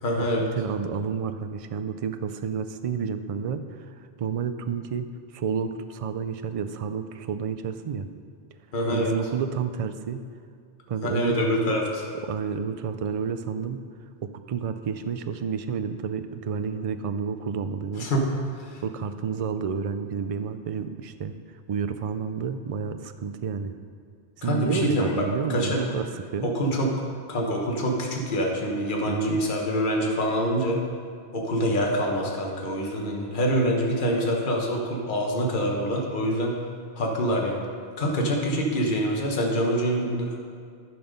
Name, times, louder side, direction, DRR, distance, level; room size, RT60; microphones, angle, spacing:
voice 1, 0.0-0.5 8.7-9.1 11.0-12.0 18.0-18.3 18.6-18.8 24.4-25.2 25.5-25.8 26.4-26.9 27.3-30.8 31.3-36.5 37.0-37.7 38.0-40.4, equal, 50° left, 0 dB, 1.3 m, -25 dB
voice 2, 0.6-8.1 8.9-10.2 10.9-11.3 11.6-11.7 12.3-13.8 14.2-18.1 18.8-21.4 21.7-23.8 24.4-26.5 29.0-29.4, right 6 dB, 55° right, 9 dB, 0.4 m, -30 dB
11.0 x 6.0 x 5.2 m, 2.2 s
omnidirectional pair, 1.1 m